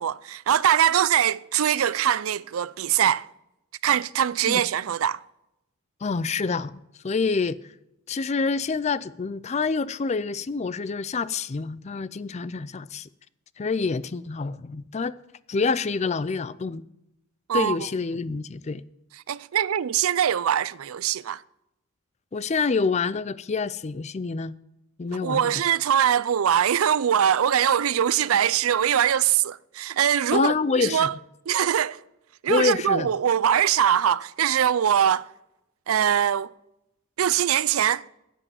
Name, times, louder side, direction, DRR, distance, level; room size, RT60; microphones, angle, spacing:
voice 1, 0.0-3.3 3.8-5.2 17.5-17.8 19.3-21.4 25.2-31.1 31.5-32.0 32.4-35.3 35.9-36.5 37.2-38.0, right 9 dB, 85° right, 0.4 m, -22 dB
voice 2, 6.0-7.6 8.1-13.1 13.6-15.1 15.5-16.8 17.5-18.8 22.3-24.5 25.0-25.5 30.3-31.1 32.5-33.1, left 4 dB, 30° left, 0.4 m, -27 dB
10.5 x 8.5 x 7.0 m
head